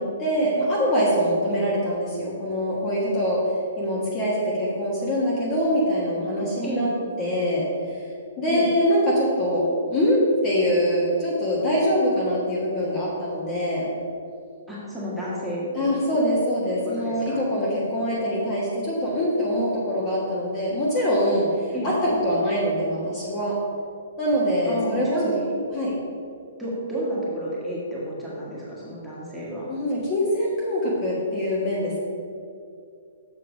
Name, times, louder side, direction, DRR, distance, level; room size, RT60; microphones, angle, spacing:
voice 1, 0.0-3.4 3.8-6.9 7.2-8.0 8.4-13.9 15.7-23.6 24.2-25.4 25.7-25.9 29.7-32.0, equal, 20° left, -6 dB, 1.4 m, -24 dB
voice 2, 14.7-15.9 17.0-17.4 18.0-18.1 21.7-21.9 24.7-25.5 26.6-29.7, equal, ahead, -9 dB, 1.8 m, -31 dB
7.3 x 5.5 x 5.2 m, 2.4 s
hypercardioid pair, 160°, 0 cm